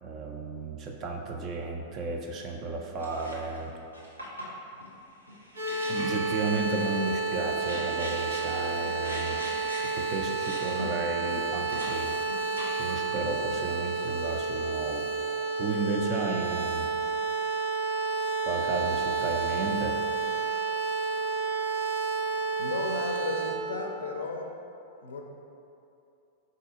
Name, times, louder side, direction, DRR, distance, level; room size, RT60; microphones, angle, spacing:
voice 1, 0.0-3.7 5.9-9.4 9.7-12.5 12.8-15.1 15.6-16.9 18.5-20.0, right 3 dB, 30° right, 1 dB, 0.3 m, -33 dB
sound 1, 3.0-3.6 3.9-11.9 12.3-13.0, equal, 90° right, 0.7 m, -42 dB
sound 2, 5.6-23.5, right 4 dB, 70° right, 1.2 m, -30 dB
voice 2, 22.6-24.5 25.0-25.2, left 3 dB, 65° left, 2 dB, 0.4 m, -34 dB
4.0 x 2.7 x 3.8 m, 2.7 s
figure-of-eight pair, 95°, 0 cm